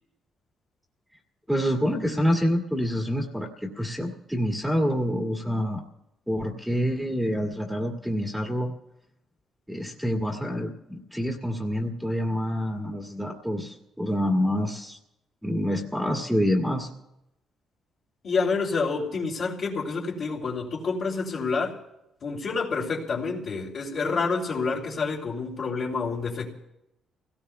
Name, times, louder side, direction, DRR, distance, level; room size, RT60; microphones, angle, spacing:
voice 1, 1.5-5.8 6.3-8.7 9.7-15.0 15.4-16.9, equal, 5° right, 0 dB, 2.1 m, -27 dB
voice 2, 18.2-21.8 22.2-26.5, left 4 dB, 55° left, -5 dB, 2.8 m, -28 dB
30.0 x 18.0 x 2.3 m, 0.87 s
cardioid pair, 90°, 0 cm